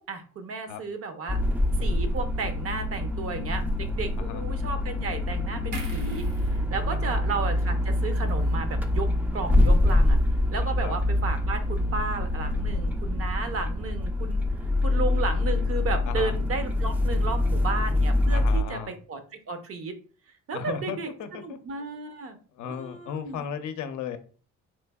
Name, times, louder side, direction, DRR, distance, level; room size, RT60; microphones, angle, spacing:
voice 1, 0.0-1.4 1.8-10.2 10.5-14.4 14.8-19.9 20.5-22.4 22.7-23.4, right 4 dB, 50° right, 8 dB, 0.6 m, -33 dB
sound 1, 1.3-18.6, left 1 dB, 5° right, 0.3 m, -25 dB
sound 2, 5.7-9.1 9.4-9.6, right 1 dB, 75° right, 1.0 m, -42 dB
voice 2, 18.3-18.9 20.5-21.6 22.6-24.2, left 7 dB, 75° left, 8 dB, 0.5 m, -35 dB
3.3 x 3.1 x 2.2 m, 0.40 s
cardioid pair, 90°, 30 cm